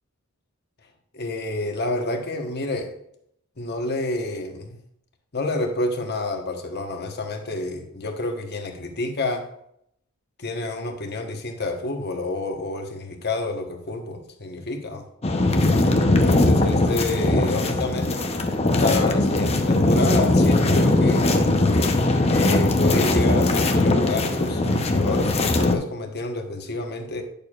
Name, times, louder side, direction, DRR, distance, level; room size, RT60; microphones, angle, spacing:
voice 1, 1.1-2.9 3.6-4.8 5.3-9.5 10.4-15.1 16.2-18.2 18.8-21.3 22.3-27.2, left 2 dB, 50° left, 4 dB, 1.1 m, -29 dB
sound 1, 15.2-25.8, left 2 dB, 30° left, 0.7 m, -20 dB
10.5 x 6.8 x 2.4 m, 0.73 s
head